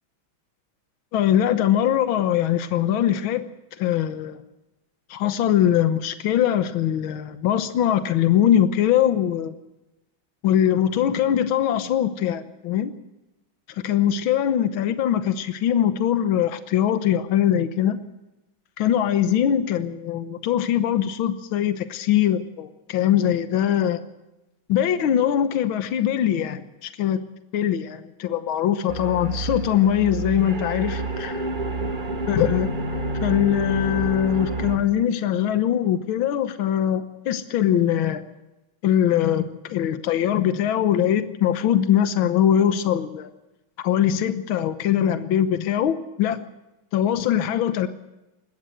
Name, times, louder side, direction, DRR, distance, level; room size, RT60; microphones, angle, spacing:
voice 1, 1.1-3.4 3.8-4.4 5.1-9.6 10.4-12.9 13.8-18.0 18.8-24.0 24.7-27.2 27.5-31.5 32.3-32.7 33.2-38.2 38.8-43.3 43.8-46.4 46.9-47.9, left 10 dB, 75° left, 10 dB, 1.8 m, -22 dB
sound 1, 28.9-34.8, right 2 dB, 25° right, 1.5 m, -28 dB
20.5 x 16.0 x 7.7 m, 0.97 s
omnidirectional pair, 2.2 m